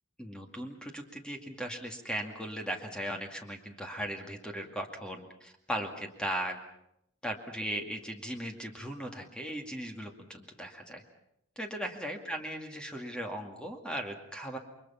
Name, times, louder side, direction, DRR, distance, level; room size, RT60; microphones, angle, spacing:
voice 1, 0.2-6.6 7.2-11.0 11.6-14.6, right 1 dB, 5° left, 3 dB, 2.2 m, -38 dB
29.5 x 23.0 x 5.8 m, 0.78 s
head